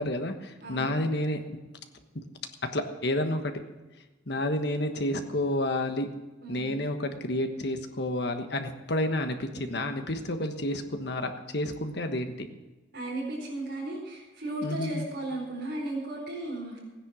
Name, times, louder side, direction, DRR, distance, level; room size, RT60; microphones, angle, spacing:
voice 1, 0.0-1.4 2.1-2.2 2.7-3.5 4.3-6.1 6.5-12.5 14.6-15.0, left 1 dB, 60° left, 7 dB, 1.3 m, -30 dB
voice 2, 0.6-1.0 6.4-6.8 12.9-16.8, right 1 dB, 55° right, -8 dB, 4.7 m, -35 dB
16.0 x 10.0 x 6.2 m, 1.2 s
head